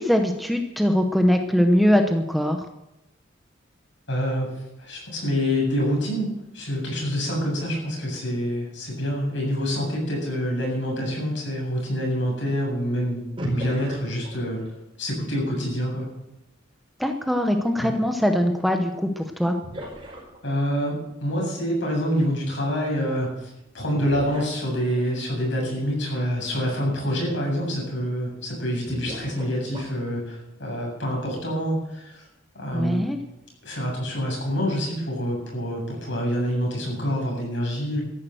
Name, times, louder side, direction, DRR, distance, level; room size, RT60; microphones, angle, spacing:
voice 1, 0.0-2.6 17.0-19.5 32.7-33.2, equal, ahead, 4 dB, 0.9 m, -22 dB
voice 2, 4.1-4.5 4.8-13.2 13.5-14.6 15.0-16.1 17.8-17.9 20.4-23.5 23.7-32.3 32.5-33.0 33.6-38.0, equal, 65° left, -1 dB, 7.9 m, -26 dB
sound 1, 13.4-14.8 18.8-18.9 19.6-20.8 23.9-25.2 26.6-26.7 27.1-27.2 28.9-30.1, right 1 dB, 25° right, 4.6 m, -36 dB
13.5 x 10.5 x 7.8 m, 0.89 s
head